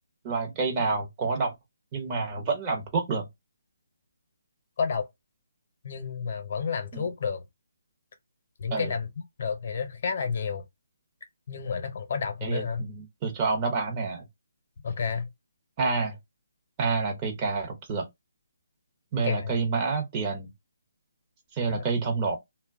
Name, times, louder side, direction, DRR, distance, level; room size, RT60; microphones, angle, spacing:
voice 1, 0.2-1.5 1.9-3.3 6.9-7.1 8.7-8.9 12.4-14.3 15.8-16.2 16.8-18.1 19.1-20.5 21.5-22.4, right 4 dB, 25° right, 0.7 m, -28 dB
voice 2, 5.8-7.4 8.6-9.1 9.4-10.6 11.5-12.8 14.8-15.3 19.2-19.6 21.7-21.8, left 6 dB, 50° left, 0.7 m, -30 dB
2.2 x 2.2 x 3.4 m
hypercardioid pair, 155°, 0 cm